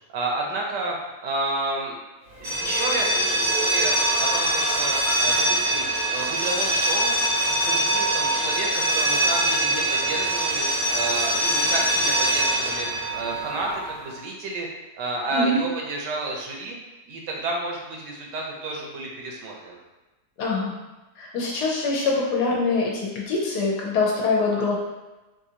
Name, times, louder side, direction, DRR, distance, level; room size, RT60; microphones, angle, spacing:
voice 1, 0.1-1.0 1.2-2.0 2.4-5.8 6.1-7.2 7.4-14.7 15.0-16.8 17.1-19.8, right 2 dB, 75° right, -1 dB, 1.3 m, -31 dB
sound 1, 2.4-14.1, right 1 dB, 45° right, 0.7 m, -23 dB
voice 2, 20.4-20.7 21.2-24.8, left 3 dB, 70° left, -3 dB, 1.2 m, -24 dB
4.0 x 2.5 x 2.7 m, 1.1 s
omnidirectional pair, 1.9 m